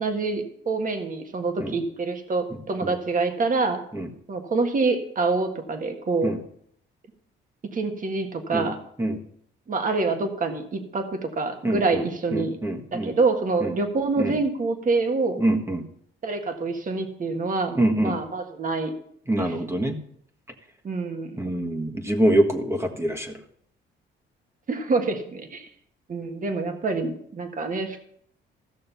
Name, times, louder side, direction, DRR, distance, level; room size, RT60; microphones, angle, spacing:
voice 1, 0.0-3.8 4.3-6.3 7.7-8.8 9.7-12.6 12.9-15.4 16.2-18.9 19.4-19.6 20.8-21.4 24.7-25.7 26.1-28.0, right 3 dB, 40° right, 6 dB, 1.7 m, -26 dB
voice 2, 11.6-12.0 12.3-13.1 13.6-13.7 14.2-14.4 15.4-15.8 17.8-18.2 19.3-20.0 21.4-23.3, right 1 dB, 15° right, 4 dB, 1.6 m, -24 dB
14.5 x 6.6 x 5.7 m, 0.68 s
cardioid pair, 90°, 20 cm